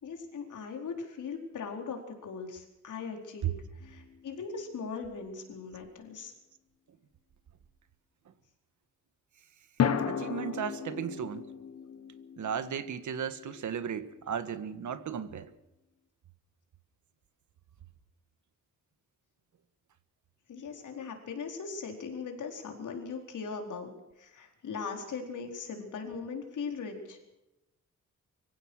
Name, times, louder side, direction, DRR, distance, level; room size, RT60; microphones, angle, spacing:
voice 1, 0.0-3.5 3.8-6.3 20.5-23.9 24.2-27.2, left 5 dB, 80° left, 4.5 m, -39 dB
sound 1, 3.8-4.9 9.8-14.1, left 8 dB, 55° left, 1.6 m, -35 dB
voice 2, 10.1-11.5 12.4-15.5, right 8 dB, 75° right, 1.6 m, -35 dB
25.0 x 16.0 x 6.5 m
wide cardioid pair, 170°, 30 cm